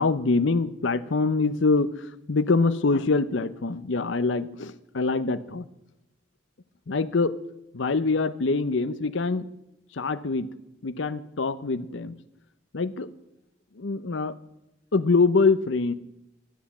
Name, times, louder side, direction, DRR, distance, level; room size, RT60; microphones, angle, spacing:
voice 1, 0.0-5.7 6.9-7.4 7.7-9.5 9.9-10.5 10.8-12.1 12.7-13.1 13.8-14.4 14.9-15.9, left 3 dB, 65° left, 14 dB, 0.6 m, -24 dB
12.5 x 8.1 x 8.4 m, 0.88 s
head